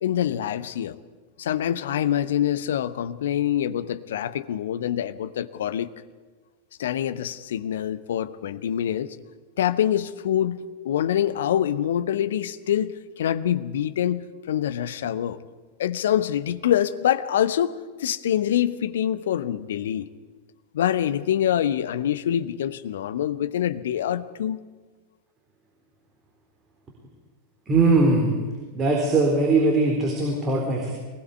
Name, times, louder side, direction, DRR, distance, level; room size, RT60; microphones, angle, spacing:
voice 1, 0.0-1.0 1.4-5.9 6.8-9.2 9.6-15.4 15.8-20.1 20.7-24.6, left 10 dB, 60° left, 13 dB, 0.9 m, -25 dB
voice 2, 27.7-28.3 28.7-30.9, right 3 dB, 20° right, 0 dB, 4.0 m, -20 dB
22.0 x 19.5 x 8.3 m, 1.4 s
figure-of-eight pair, 90°, 0 cm